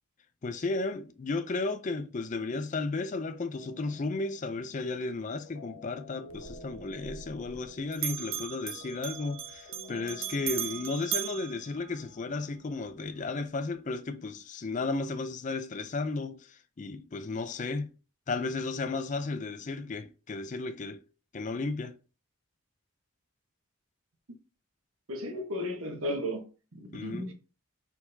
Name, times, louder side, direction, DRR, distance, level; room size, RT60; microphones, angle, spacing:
voice 1, 0.4-17.9 18.3-21.0 21.3-22.0 26.9-27.3, left 3 dB, 35° left, 0.4 m, -34 dB
sound 1, 3.5-12.7, left 2 dB, 80° left, 1.5 m, -52 dB
Bell, 6.3-7.7 7.9-12.4, right 10 dB, 65° right, 0.6 m, -38 dB
voice 2, 25.1-26.4 26.7-27.3, equal, 85° right, 1.1 m, -34 dB
4.4 x 4.0 x 2.7 m
head